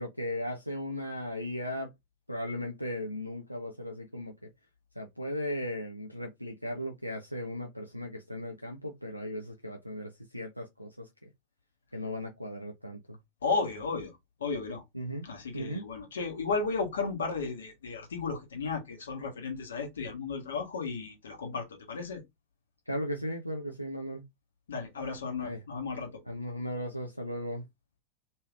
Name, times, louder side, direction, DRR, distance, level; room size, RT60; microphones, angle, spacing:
voice 1, 0.0-1.9 2.3-4.3 5.0-11.3 11.9-13.2 14.9-15.3 15.5-15.8 22.9-24.2 25.4-25.6 26.3-27.6, equal, 90° left, 0.5 m, -37 dB
voice 2, 13.4-14.1 14.4-14.8 15.2-22.2 24.7-26.2, left 4 dB, 65° left, 1.2 m, -34 dB
3.2 x 2.7 x 2.4 m
figure-of-eight pair, 90°, 0 cm